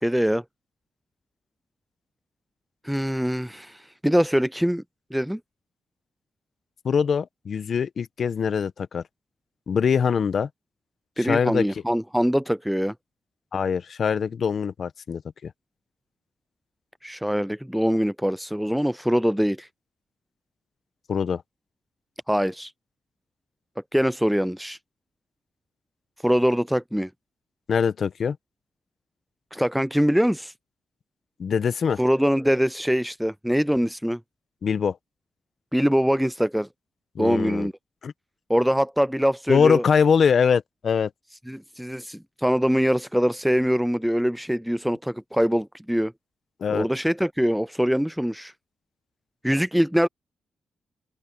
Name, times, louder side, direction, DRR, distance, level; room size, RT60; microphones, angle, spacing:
voice 1, 0.0-0.4 2.8-4.8 5.1-5.4 11.2-12.9 17.0-19.7 22.3-22.7 23.9-24.8 26.2-27.1 29.5-30.5 32.0-34.2 35.7-36.7 37.2-37.7 38.5-39.8 41.5-46.1 46.7-48.5 49.4-50.1, equal, ahead, 0.4 m, -23 dB
voice 2, 6.8-9.0 9.7-10.5 11.2-11.6 13.5-15.5 21.1-21.4 27.7-28.4 31.4-32.0 34.6-35.0 37.1-37.7 38.0-38.1 39.5-41.1 46.6-46.9, left 6 dB, 60° left, 1.1 m, -23 dB
open air
cardioid pair, 75°, 0 cm